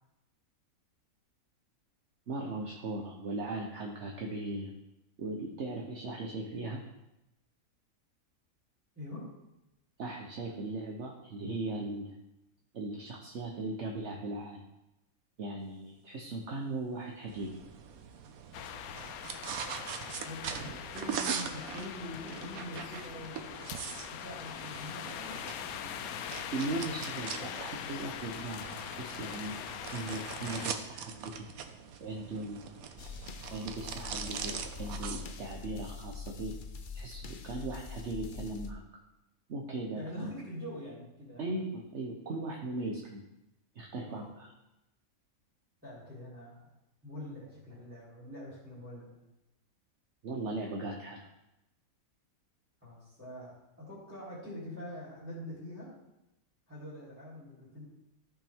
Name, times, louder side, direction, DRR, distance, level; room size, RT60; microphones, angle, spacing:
voice 1, 2.3-4.7 5.2-6.8 10.0-12.1 12.7-14.6 15.4-17.6 26.5-29.6 29.9-31.5 32.0-32.8 33.5-36.6 36.9-38.8 39.5-40.3 41.4-43.3 43.7-44.5 50.2-51.3, right 2 dB, 55° right, 1 dB, 1.2 m, -38 dB
voice 2, 8.9-9.3 20.2-23.6 24.1-25.3 25.6-26.0 39.9-41.6 44.1-44.4 45.8-46.7 47.0-49.1 52.8-55.9 56.7-57.9, left 1 dB, 10° right, -10 dB, 3.5 m, -45 dB
sound 1, 17.3-35.3, right 7 dB, 80° right, 1.2 m, -42 dB
sound 2, 18.5-30.7, left 9 dB, 85° left, 1.1 m, -42 dB
sound 3, 33.0-38.7, left 4 dB, 55° left, 0.6 m, -44 dB
14.0 x 5.7 x 3.6 m, 0.91 s
omnidirectional pair, 1.5 m